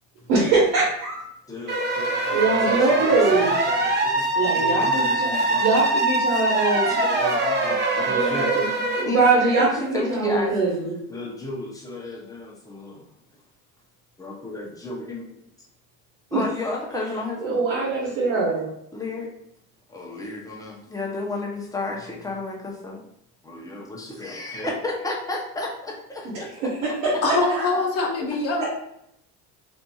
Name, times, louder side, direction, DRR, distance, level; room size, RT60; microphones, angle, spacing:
voice 1, 0.3-1.2 2.3-3.5 4.4-7.0 8.1-8.7 9.0-10.9 16.3-16.4 17.5-18.7 27.0-27.1 27.5-27.6, right 3 dB, 80° right, -6 dB, 1.0 m, -22 dB
voice 2, 1.5-5.7 6.7-6.8 7.1-8.6 9.0-10.7 11.1-13.0 14.2-15.4 16.3-18.0 18.9-19.3 19.9-23.0 23.4-26.7 27.1-27.2, left 2 dB, 10° left, -2 dB, 0.6 m, -33 dB
sound 1, 1.7-9.0, right 2 dB, 30° right, 0.6 m, -23 dB
voice 3, 27.2-28.7, left 3 dB, 40° left, -1 dB, 0.8 m, -23 dB
2.6 x 2.6 x 2.3 m, 0.76 s
supercardioid pair, 100°, 37 cm